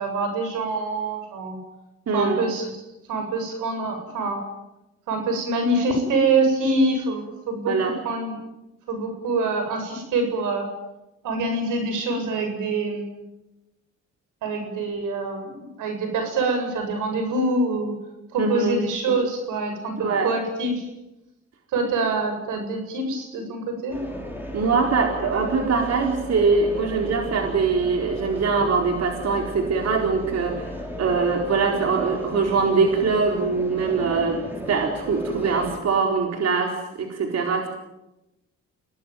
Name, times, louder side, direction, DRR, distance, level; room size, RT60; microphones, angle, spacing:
voice 1, 0.0-1.6 2.1-2.7 3.1-4.4 5.1-7.7 8.0-8.4 8.9-10.7 11.2-13.2 14.4-17.9 18.3-20.8 21.7-24.0, right 2 dB, 85° right, 5 dB, 8.0 m, -25 dB
voice 2, 2.1-2.4 7.7-7.9 18.4-18.8 20.0-20.3 24.5-34.4 34.7-37.7, right 4 dB, 55° right, 2 dB, 4.2 m, -23 dB
sound 1, 23.9-35.8, left 1 dB, 5° right, 6.3 m, -35 dB
28.0 x 19.0 x 9.4 m, 0.97 s
cardioid pair, 90°, 30 cm